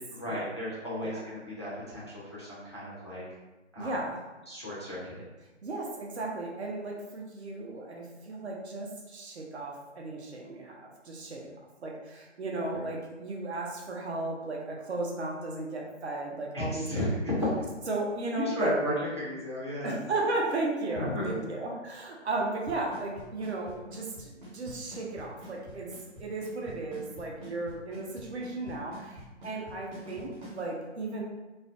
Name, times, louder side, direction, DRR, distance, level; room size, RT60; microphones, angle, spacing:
voice 1, 0.1-3.2 3.7-3.9 4.5-5.3 12.7-12.8 16.5-17.6 18.3-19.9 20.9-21.5, left 1 dB, 25° left, -8 dB, 0.4 m, -33 dB
voice 2, 3.8-4.2 5.6-11.5 11.8-16.8 17.9-18.7 19.8-25.9 26.2-31.2, right 2 dB, 60° right, -1 dB, 0.7 m, -35 dB
Drum kit / Snare drum / Bass drum, 22.7-30.6, left 1 dB, 40° right, 1.0 m, -46 dB
2.4 x 2.1 x 2.5 m, 1.1 s
figure-of-eight pair, 150°, 37 cm